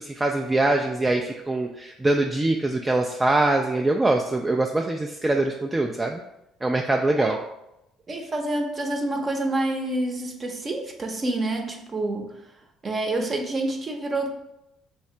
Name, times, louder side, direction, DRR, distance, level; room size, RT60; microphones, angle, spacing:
voice 1, 0.0-6.2 6.6-7.4, right 2 dB, 20° right, 2 dB, 0.4 m, -23 dB
voice 2, 8.1-12.3 12.8-14.3, right 2 dB, 35° right, 3 dB, 0.8 m, -27 dB
3.2 x 2.8 x 4.3 m, 0.87 s
hypercardioid pair, 55°, 0 cm